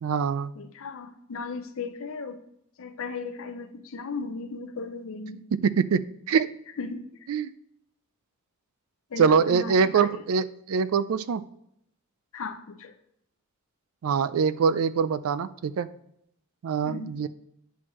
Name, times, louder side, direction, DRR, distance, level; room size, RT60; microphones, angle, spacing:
voice 1, 0.0-0.5 5.5-6.0 6.3-6.5 7.3-7.5 9.2-11.4 14.0-15.9 16.6-17.3, right 6 dB, 70° right, 14 dB, 0.4 m, -24 dB
voice 2, 0.6-2.4 2.8-5.4 6.8-7.1 9.1-10.2 12.3-12.9 16.8-17.1, left 4 dB, 65° left, 8 dB, 0.6 m, -36 dB
9.2 x 6.1 x 3.0 m, 0.76 s
head